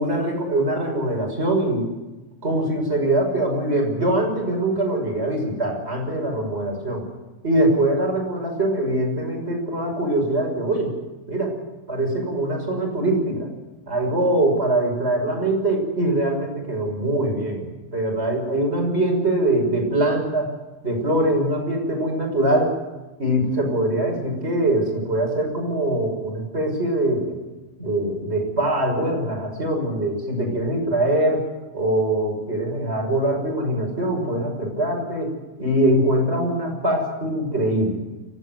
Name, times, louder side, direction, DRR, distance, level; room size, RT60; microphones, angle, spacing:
voice 1, 0.0-1.9 2.4-7.1 7.4-10.9 11.3-11.5 11.9-13.5 13.9-20.5 20.8-22.7 23.2-27.4 27.8-31.4 31.7-35.3 35.6-38.0, right 1 dB, 10° right, 0 dB, 6.2 m, -23 dB
24.5 x 17.0 x 7.9 m, 1.1 s
omnidirectional pair, 5.7 m